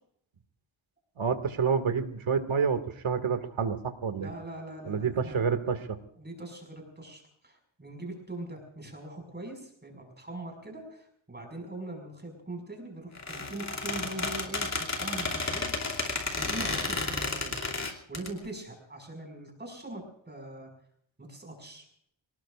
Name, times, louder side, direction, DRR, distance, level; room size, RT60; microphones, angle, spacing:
voice 1, 1.2-2.8 3.0-4.3 4.9-6.0, right 6 dB, 90° right, 8 dB, 2.2 m, -28 dB
voice 2, 4.2-5.5 5.9-17.6 18.1-20.7 21.2-21.8, right 2 dB, 20° right, 2 dB, 5.7 m, -42 dB
Squeak, 13.1-18.3, left 3 dB, 35° left, 2.8 m, -32 dB
29.0 x 19.0 x 2.5 m, 0.68 s
wide cardioid pair, 140°, 46 cm